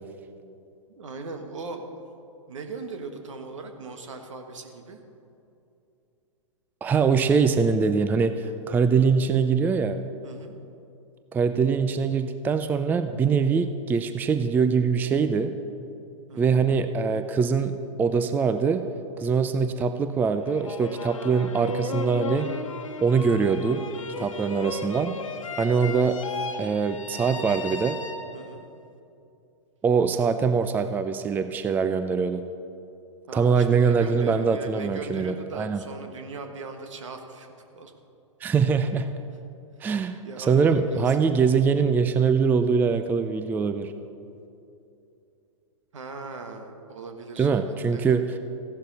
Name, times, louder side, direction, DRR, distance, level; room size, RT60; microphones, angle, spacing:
voice 1, 0.9-1.9 2.5-5.0 10.2-10.6 16.3-16.6 24.1-24.5 28.3-28.7 33.3-37.9 40.2-41.2 45.9-48.1, right 3 dB, 70° right, 6 dB, 1.6 m, -39 dB
voice 2, 6.8-10.0 11.3-15.5 16.4-18.8 19.2-22.5 23.0-23.8 24.2-25.1 25.6-26.2 26.6-28.0 29.8-32.5 33.3-35.8 38.4-39.1 39.8-43.9 47.4-48.3, right 5 dB, 10° right, 10 dB, 0.4 m, -23 dB
sound 1, 20.4-28.6, left 4 dB, 80° left, 1.2 m, -35 dB
15.0 x 11.5 x 4.1 m, 2.7 s
figure-of-eight pair, 110°, 17 cm